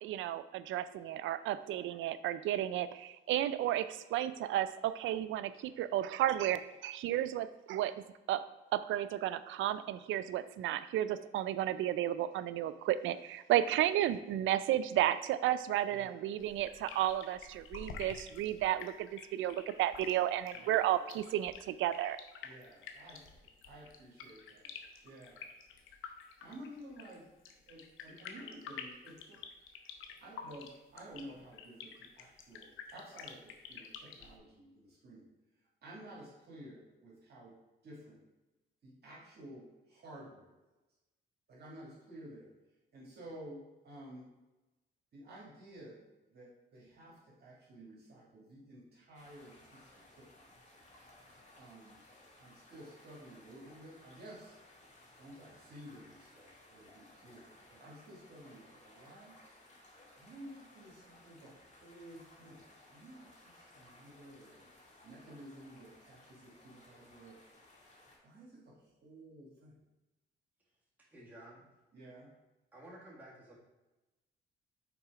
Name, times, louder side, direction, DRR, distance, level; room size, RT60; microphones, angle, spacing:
voice 1, 0.0-7.9 8.3-8.4 8.7-22.2, right 12 dB, 80° right, 14 dB, 0.4 m, -33 dB
voice 2, 15.9-16.3 20.5-21.0 22.4-23.2 23.7-24.6 25.0-25.5 26.4-27.2 27.7-29.4 30.2-35.3 35.8-37.5 37.8-38.2 38.8-40.5 41.5-42.5 42.9-44.3 45.1-46.0 46.3-49.9 50.2-50.4 51.6-52.0 52.4-54.5 55.2-59.4 60.2-62.6 62.9-64.6 65.0-67.4 68.2-69.8 71.9-72.3, right 1 dB, 55° right, -5 dB, 2.0 m, -52 dB
sound 1, 16.4-34.4, left 6 dB, 85° left, 0.7 m, -49 dB
sound 2, 49.1-68.2, left 1 dB, 35° left, 2.2 m, -60 dB
voice 3, 71.1-71.7 72.7-73.5, right 1 dB, 10° right, -6 dB, 1.8 m, -53 dB
5.9 x 4.1 x 4.8 m, 1.1 s
cardioid pair, 90°, 20 cm